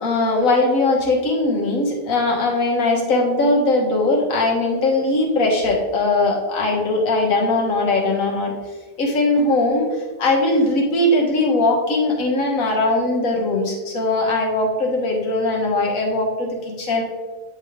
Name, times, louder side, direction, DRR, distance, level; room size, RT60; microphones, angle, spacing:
voice 1, 0.0-8.5 9.0-9.9 10.2-17.0, left 2 dB, 85° left, -2 dB, 1.7 m, -20 dB
9.0 x 3.6 x 3.5 m, 1.3 s
omnidirectional pair, 1.4 m